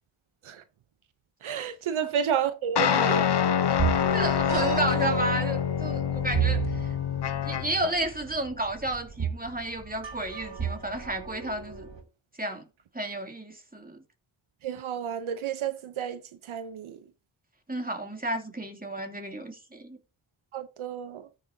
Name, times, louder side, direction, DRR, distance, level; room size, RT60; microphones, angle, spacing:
voice 1, 1.4-3.3 4.5-4.6 14.6-16.2 16.5-17.0 20.5-21.2, right 8 dB, 80° right, 0.9 m, -31 dB
sound 1, 2.8-7.9, left 8 dB, 55° left, 0.9 m, -26 dB
sound 2, 3.7-12.0, right 7 dB, 60° right, 2.9 m, -33 dB
voice 2, 3.9-6.9 7.4-11.9 12.4-12.6 12.9-14.0 17.7-20.0, right 1 dB, 20° right, 2.8 m, -32 dB
13.5 x 6.6 x 2.8 m
cardioid pair, 40°, 48 cm